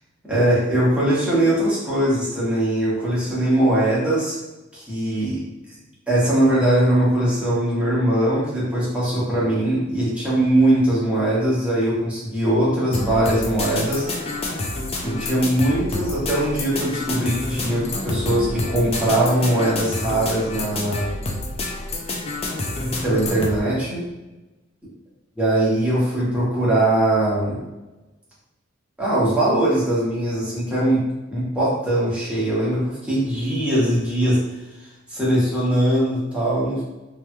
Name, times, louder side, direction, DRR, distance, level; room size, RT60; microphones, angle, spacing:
voice 1, 0.3-4.4 4.7-5.4 6.1-14.0 15.0-21.1 22.8-24.0 25.4-27.6 29.0-31.0 31.3-34.4 35.1-36.8, right 1 dB, 5° right, -9 dB, 1.1 m, -21 dB
sound 1, 12.9-23.6, left 2 dB, 30° left, 0.4 m, -28 dB
3.1 x 3.0 x 2.2 m, 1.1 s
head